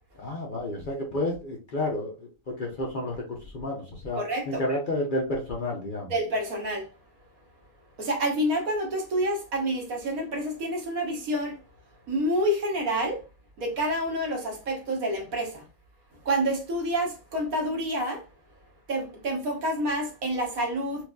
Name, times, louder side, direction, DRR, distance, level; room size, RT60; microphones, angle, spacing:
voice 1, 0.2-6.1, left 1 dB, 50° left, 0.7 m, -31 dB
voice 2, 4.2-4.6 6.1-6.9 8.0-11.6 12.1-13.2 13.6-15.6 16.2-18.2 18.9-21.0, right 1 dB, 75° right, 1.5 m, -28 dB
4.5 x 2.5 x 2.3 m
omnidirectional pair, 1.5 m